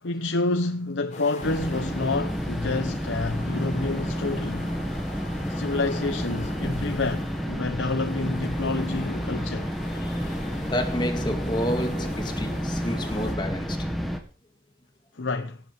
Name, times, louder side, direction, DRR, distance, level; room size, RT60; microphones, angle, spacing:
voice 1, 0.0-4.8 5.5-9.7 15.1-15.6, left 3 dB, 80° left, 1.0 m, -29 dB
sound 1, 1.1-13.3, left 2 dB, 40° left, 4.1 m, -43 dB
sound 2, 1.4-14.2, equal, ahead, 1.9 m, -30 dB
voice 2, 9.9-14.1, equal, 25° left, 2.1 m, -31 dB
17.5 x 8.3 x 6.1 m
head